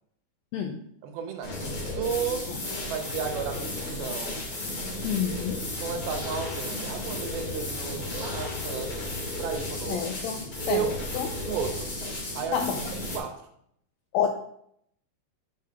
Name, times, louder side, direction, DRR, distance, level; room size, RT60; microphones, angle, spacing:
voice 1, 1.0-2.5 2.8-4.4 5.7-9.0 9.4-10.1 10.6-11.0 11.5-11.9 12.3-12.7 13.0-13.4, right 7 dB, 80° right, 5 dB, 2.4 m, -33 dB
sound 1, 1.4-13.2, left 2 dB, 45° left, 1.9 m, -34 dB
voice 2, 5.0-5.6 9.9-10.9 11.1-11.3 12.5-12.8 14.1-14.3, left 8 dB, 90° left, 4 dB, 2.0 m, -28 dB
8.2 x 7.6 x 2.3 m, 0.70 s
omnidirectional pair, 4.7 m